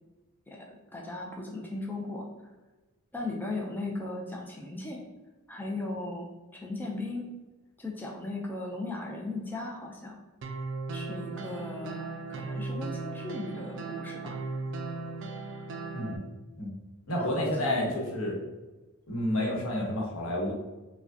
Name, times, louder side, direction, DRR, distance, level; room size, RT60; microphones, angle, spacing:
voice 1, 0.5-2.5 3.1-5.0 5.5-7.3 7.8-10.2 10.9-14.4 17.2-17.9, left 2 dB, 10° left, -1 dB, 0.4 m, -37 dB
sound 1, 10.4-16.2, right 3 dB, 60° right, 0.4 m, -37 dB
voice 2, 17.1-18.4 19.1-20.5, left 1 dB, 85° left, -1 dB, 1.0 m, -30 dB
4.7 x 2.1 x 2.6 m, 1.2 s
head